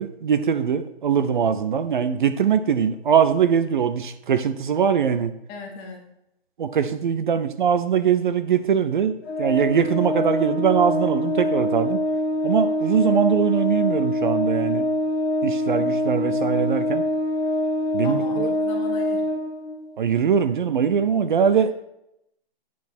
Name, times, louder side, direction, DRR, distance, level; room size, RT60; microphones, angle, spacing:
voice 1, 0.0-5.3 6.6-12.0 12.4-14.9 15.4-17.0 17.9-18.5 20.0-21.7, right 7 dB, 50° right, 11 dB, 0.7 m, -22 dB
voice 2, 5.5-6.1 18.0-19.3 21.5-21.7, left 4 dB, 15° left, 2 dB, 0.8 m, -38 dB
Organ, 9.2-20.0, left 1 dB, 90° left, 1.1 m, -24 dB
8.5 x 6.0 x 4.3 m, 0.82 s
hypercardioid pair, 155°, 31 cm